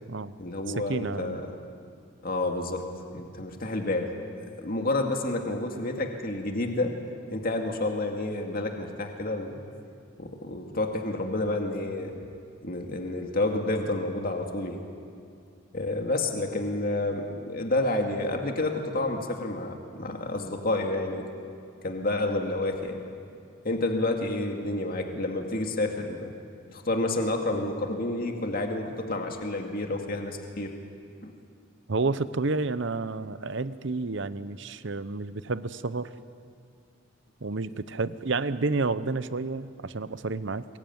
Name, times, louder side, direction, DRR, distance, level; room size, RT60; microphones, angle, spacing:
voice 1, 0.4-1.5 2.2-2.9 3.1-4.1 4.6-7.0 7.3-9.6 10.2-12.2 12.6-14.8 15.7-21.3 21.8-23.0 23.6-26.3 26.7-30.8 31.2-31.4, left 2 dB, 45° left, 3 dB, 2.2 m, -29 dB
voice 2, 0.9-1.4 31.9-36.1 37.4-40.7, right 3 dB, 60° right, 15 dB, 0.8 m, -30 dB
24.0 x 21.5 x 9.4 m, 2.4 s
head